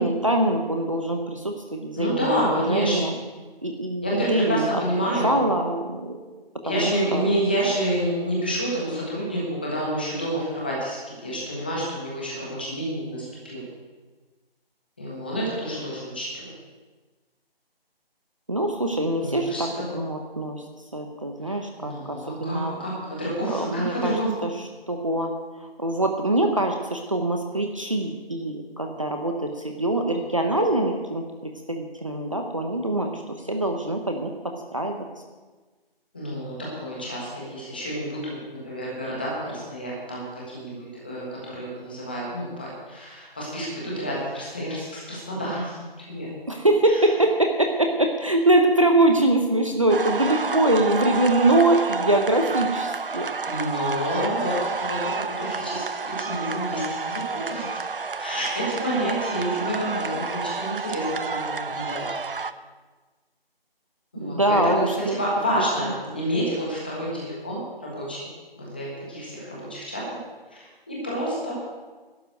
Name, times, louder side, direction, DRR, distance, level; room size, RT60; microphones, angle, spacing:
voice 1, 0.0-3.1 3.6-6.1 6.6-7.3 18.5-20.6 20.9-22.7 23.5-24.5 24.9-25.3 25.8-31.2 31.7-35.1 46.5-53.3 64.2-64.8 65.1-65.2 65.8-65.9, right 1 dB, 35° right, 3 dB, 0.8 m, -23 dB
voice 2, 2.0-3.1 4.0-5.3 6.6-13.6 15.0-16.5 19.2-19.9 21.5-24.4 36.1-40.7 41.0-46.3 46.9-47.1 53.5-57.8 58.2-62.2 64.1-68.3 68.6-70.0 70.5-71.6, equal, 10° left, -5 dB, 1.4 m, -29 dB
sound 1, 49.9-62.5, right 4 dB, 60° right, 0.7 m, -30 dB
12.0 x 7.4 x 9.2 m, 1.3 s
figure-of-eight pair, 175°, 30 cm